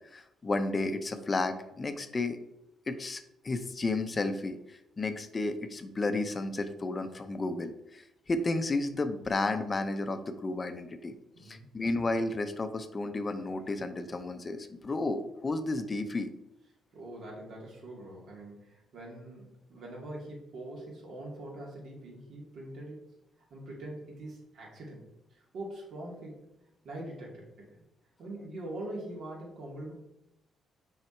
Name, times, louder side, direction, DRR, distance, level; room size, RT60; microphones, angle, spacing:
voice 1, 0.1-2.4 2.9-11.1 11.4-16.3, left 2 dB, 30° left, 9 dB, 0.7 m, -32 dB
voice 2, 11.3-11.7 16.9-23.0 23.5-25.0 25.3-26.4 26.8-27.8 28.2-29.9, right 1 dB, 70° right, -2 dB, 2.5 m, -43 dB
6.1 x 4.7 x 4.4 m, 0.86 s
cardioid pair, 90°, 0 cm